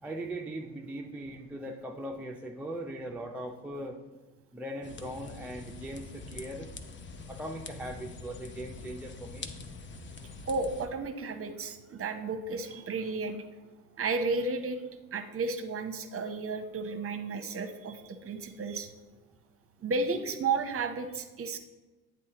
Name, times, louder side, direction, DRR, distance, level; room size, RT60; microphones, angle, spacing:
voice 1, 0.0-4.0 4.5-6.7 7.3-9.5, right 1 dB, 5° right, 1 dB, 0.3 m, -39 dB
sound 1, 4.8-10.9, left 4 dB, 25° left, 0.7 m, -44 dB
voice 2, 10.5-13.4 14.0-14.8 15.1-18.9 19.8-21.6, right 3 dB, 30° right, 8 dB, 0.8 m, -33 dB
9.6 x 3.6 x 2.9 m, 1.2 s
figure-of-eight pair, 50°, 48 cm